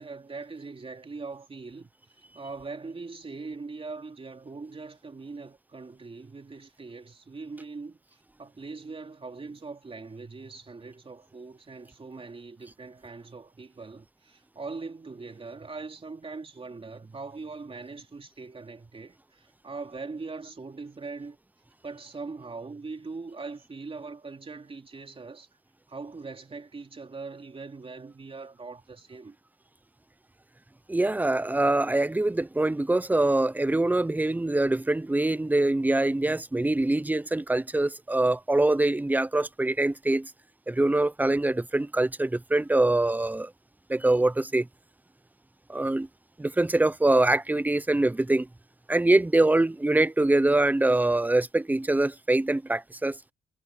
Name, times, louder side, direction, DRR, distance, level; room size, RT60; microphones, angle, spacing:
voice 1, 0.0-1.9 2.3-8.0 8.4-21.4 21.8-25.5 25.9-29.4, right 4 dB, 30° right, 3.3 m, -41 dB
voice 2, 30.9-40.3 40.7-43.5 43.9-44.7 45.7-46.1 46.4-48.5 48.9-53.2, right 2 dB, 10° right, 0.8 m, -24 dB
cardioid pair, 90°, 20 cm